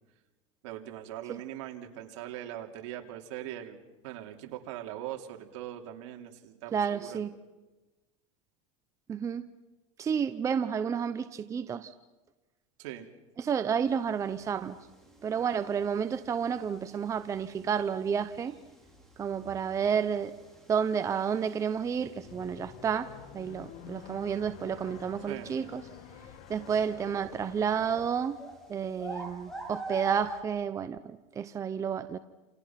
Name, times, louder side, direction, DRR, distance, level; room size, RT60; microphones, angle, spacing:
voice 1, 0.6-3.8 4.0-7.2 12.8-13.1 25.3-25.5, right 12 dB, 70° right, 3 dB, 3.1 m, -41 dB
voice 2, 6.7-7.3 9.1-9.4 10.0-11.9 13.4-14.8 15.2-18.6 19.2-20.3 20.7-23.1 23.3-25.8 26.5-28.4 28.7-32.2, right 7 dB, 20° right, 10 dB, 0.8 m, -30 dB
sound 1, 13.8-30.4, right 1 dB, 5° left, 5.1 m, -48 dB
sound 2, 22.2-28.1, left 10 dB, 50° left, 1.7 m, -49 dB
29.0 x 28.5 x 6.0 m, 1.1 s
supercardioid pair, 150°, 17 cm